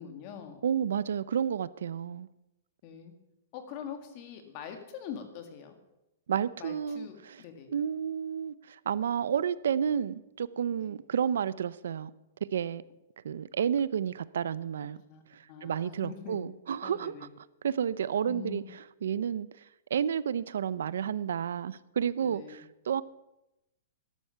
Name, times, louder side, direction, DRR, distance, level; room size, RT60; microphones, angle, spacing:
voice 1, 0.0-0.6 2.8-3.1 3.5-5.7 6.6-7.7 10.8-10.9 15.0-16.5 16.8-17.3 18.3-18.7 22.2-22.6, left 8 dB, 30° left, 7 dB, 1.8 m, -44 dB
voice 2, 0.6-2.3 6.3-7.4 7.7-12.1 12.5-12.8 13.2-15.0 15.3-17.3 17.6-19.5 19.9-23.0, right 8 dB, 75° right, 18 dB, 0.5 m, -31 dB
13.0 x 11.5 x 5.7 m, 0.92 s
hypercardioid pair, 175°, 0 cm